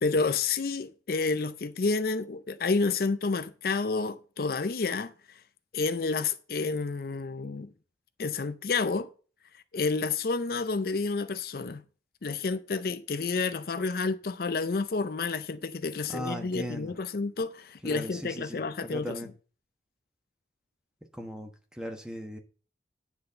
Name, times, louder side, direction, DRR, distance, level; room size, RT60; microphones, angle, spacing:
voice 1, 0.0-5.4 5.7-7.7 8.2-9.1 9.7-11.8 12.2-19.3, left 4 dB, 55° left, 0.5 m, -30 dB
voice 2, 16.1-16.9 17.8-18.6 18.9-19.3 21.2-21.5 21.8-22.4, equal, 5° right, 1.1 m, -37 dB
9.6 x 4.2 x 6.6 m
head